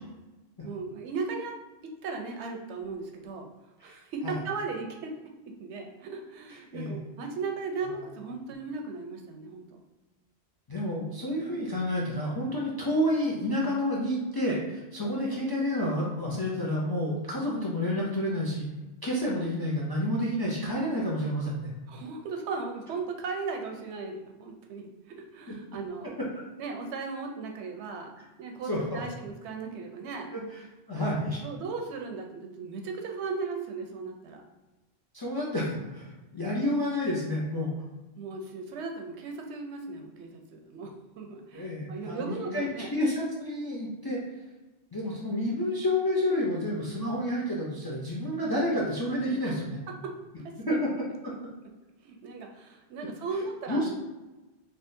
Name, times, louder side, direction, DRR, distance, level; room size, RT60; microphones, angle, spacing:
voice 1, 0.6-1.6 1.8-3.5 3.8-5.1 5.6-9.8 12.7-12.8 21.9-24.9 25.3-26.1 26.6-30.3 31.4-34.4 38.2-42.9 49.4-49.5 50.0-50.8 52.0-53.9, right 4 dB, 85° right, 3 dB, 0.9 m, -37 dB
voice 2, 3.8-4.4 6.7-7.0 10.7-18.7 19.0-21.7 28.7-29.0 30.3-30.6 30.9-31.4 35.1-37.7 41.5-44.2 44.9-49.8 50.7-50.9 51.2-51.3 53.7-53.9, left 1 dB, 40° left, -4 dB, 0.3 m, -29 dB
3.6 x 2.3 x 2.6 m, 1.1 s
omnidirectional pair, 1.1 m